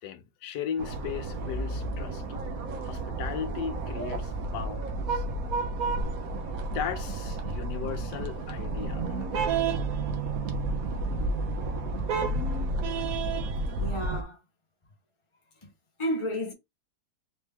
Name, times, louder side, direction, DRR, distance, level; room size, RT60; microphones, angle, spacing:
voice 1, 0.0-2.2 2.8-5.2 6.7-9.2, left 8 dB, 80° left, 1.3 m, -37 dB
sound 1, 0.8-14.2, right 3 dB, 60° right, 1.3 m, -31 dB
voice 2, 13.7-14.4 15.6-15.7 16.0-16.5, equal, 20° left, 0.8 m, -31 dB
4.4 x 3.1 x 3.4 m
omnidirectional pair, 1.9 m